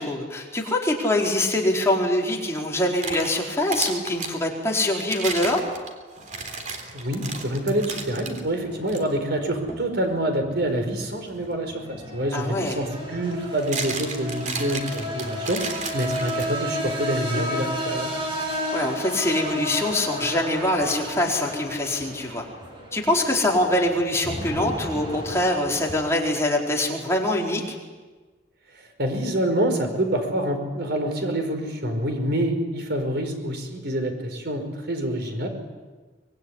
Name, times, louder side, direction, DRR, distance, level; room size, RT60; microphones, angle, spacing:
voice 1, 0.0-5.6 12.3-12.8 18.7-22.4 22.9-27.6, left 1 dB, 15° left, -1 dB, 4.6 m, -24 dB
sound 1, 2.7-4.4 5.0-8.4 8.9-9.0 9.7-9.9 12.0-12.1 13.3-16.8, right 4 dB, 45° right, 3.6 m, -33 dB
sound 2, 6.2-26.0, equal, 30° right, 7.8 m, -34 dB
voice 2, 6.9-15.6 15.9-18.1 29.0-35.5, right 1 dB, 65° right, 5 dB, 5.1 m, -26 dB
25.0 x 21.5 x 10.0 m, 1.4 s
head